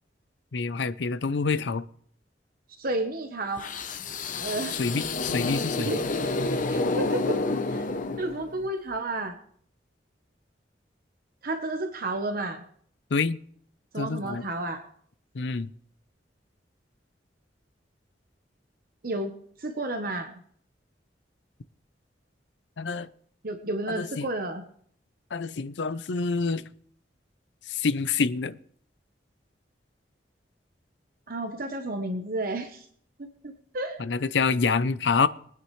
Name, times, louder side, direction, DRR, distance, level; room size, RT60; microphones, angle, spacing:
voice 1, 0.5-1.8 4.8-5.9 13.1-13.4 14.0-14.5 15.3-15.7 22.8-23.1 23.9-24.3 25.3-26.6 27.7-28.6 34.0-35.3, left 4 dB, 85° left, 0.6 m, -27 dB
voice 2, 2.8-3.7 4.4-4.8 5.8-6.4 6.7-7.4 7.7-7.9 8.2-9.3 11.4-12.6 13.9-14.8 19.0-19.3 19.6-20.3 23.4-24.6 31.3-32.8 33.2-34.0, right 2 dB, 55° right, 1.0 m, -31 dB
sound 1, 3.6-8.7, left 3 dB, 45° left, 0.8 m, -29 dB
23.0 x 9.5 x 3.2 m
head